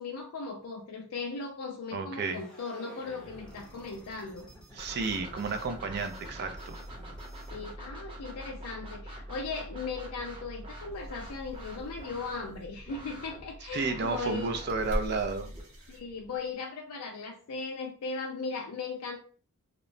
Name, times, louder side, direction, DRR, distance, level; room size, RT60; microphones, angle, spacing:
voice 1, 0.0-4.5 7.5-14.6 15.9-19.2, left 4 dB, 85° left, 0 dB, 0.4 m, -38 dB
voice 2, 1.9-2.4 4.7-6.8 13.7-15.5, right 4 dB, 45° right, 8 dB, 0.3 m, -32 dB
sound 1, 2.2-7.8, equal, 5° left, 0.5 m, -52 dB
sound 2, 4.8-15.6, right 1 dB, 25° right, 0.8 m, -44 dB
sound 3, 10.9-16.6, equal, 60° right, 0.8 m, -43 dB
2.9 x 2.0 x 2.5 m, 0.41 s
head